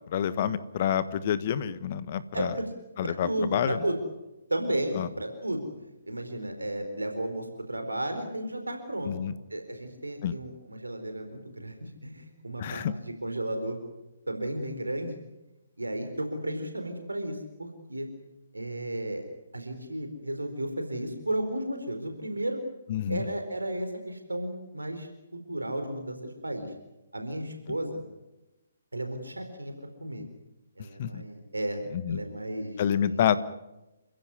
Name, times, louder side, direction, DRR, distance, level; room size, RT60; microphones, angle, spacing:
voice 1, 0.1-2.5 3.0-3.8 4.9-5.1 9.0-9.4 10.2-10.3 12.6-12.9 22.9-23.3 27.7-27.8 31.0-31.2 31.9-32.2 32.8-33.4, left 9 dB, 40° left, 16 dB, 1.3 m, -28 dB
voice 2, 2.3-2.7 3.0-4.0 4.5-5.7 6.1-9.1 9.5-12.8 13.2-13.8 14.3-15.2 15.8-18.1 18.5-19.2 19.5-22.6 23.1-25.1 25.5-26.7 27.1-28.0 28.9-29.7 30.0-30.2 30.8-31.8 32.1-33.2, right 1 dB, 75° right, 6 dB, 4.3 m, -33 dB
29.0 x 16.0 x 9.7 m, 1.0 s
figure-of-eight pair, 135°, 0 cm